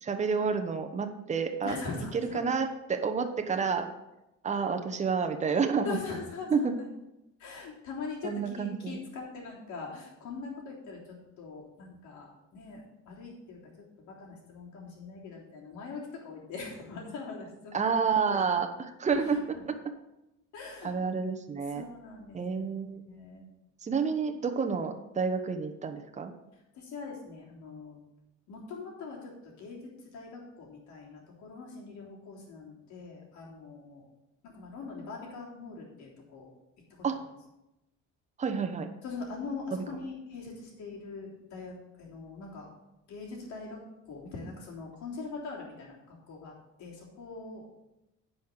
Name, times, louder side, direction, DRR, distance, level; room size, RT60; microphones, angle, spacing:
voice 1, 0.0-1.8 2.1-3.9 4.4-6.0 6.5-6.8 8.2-9.0 17.7-19.9 20.8-21.8 22.3-23.0 23.8-26.3 37.0-37.2 38.4-38.9 39.7-39.8, right 5 dB, 25° right, 5 dB, 1.0 m, -29 dB
voice 2, 1.6-2.4 5.9-6.5 7.4-13.6 14.1-17.9 18.3-18.5 19.1-19.3 19.5-19.6 20.5-20.9 21.7-23.5 26.8-28.0 28.5-34.0 34.4-36.5 39.0-42.7 43.1-43.8 44.1-46.5 46.8-47.6, left 4 dB, 80° left, -3 dB, 3.4 m, -42 dB
10.5 x 5.7 x 6.6 m, 0.92 s
cardioid pair, 130°, 29 cm